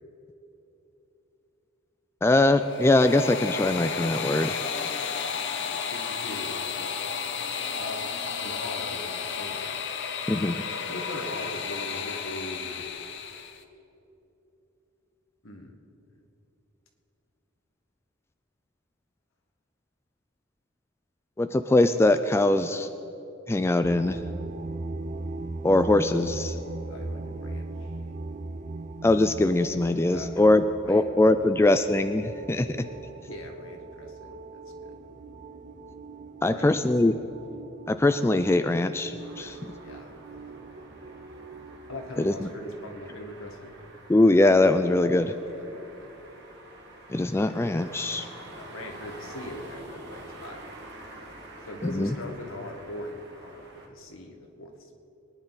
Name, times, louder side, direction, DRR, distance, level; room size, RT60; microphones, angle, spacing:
voice 1, 2.2-4.7 10.3-10.6 21.4-22.9 23.5-24.2 25.6-26.5 29.0-32.7 36.4-37.1 37.9-39.6 42.2-42.5 44.1-45.3 47.1-48.3 51.8-52.1, left 2 dB, 10° left, 9 dB, 0.3 m, -22 dB
sound 1, 2.5-13.6, left 6 dB, 60° left, 0.8 m, -33 dB
voice 2, 5.7-6.6 7.8-8.0 8.4-9.8 10.9-12.9 15.4-15.8 26.9-27.9 30.1-31.1 31.4-31.5 33.3-35.0 36.4-36.9 39.8-41.2 41.9-43.7 45.4-46.1 48.5-50.6 51.6-55.1, left 1 dB, 75° left, 2 dB, 1.7 m, -41 dB
sound 2, 23.8-42.5, right 2 dB, 40° right, 0.5 m, -39 dB
sound 3, 39.2-53.9, right 1 dB, 55° right, 2.1 m, -47 dB
23.5 x 10.0 x 4.1 m, 3.0 s
head